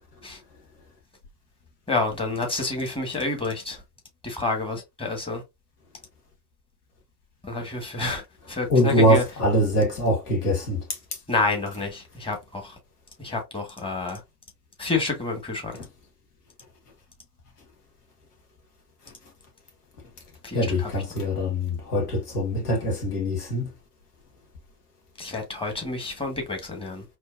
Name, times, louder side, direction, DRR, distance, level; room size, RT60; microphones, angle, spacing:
voice 1, 1.9-3.8 4.2-5.4 7.4-8.2 8.5-9.2 11.3-12.7 13.2-14.2 14.8-15.8 20.4-20.9 25.2-27.0, left 3 dB, 10° left, 1.6 m, -28 dB
voice 2, 8.7-10.9 20.5-23.7, equal, 70° left, 1.8 m, -23 dB
4.5 x 3.1 x 2.6 m
figure-of-eight pair, 80°, 47 cm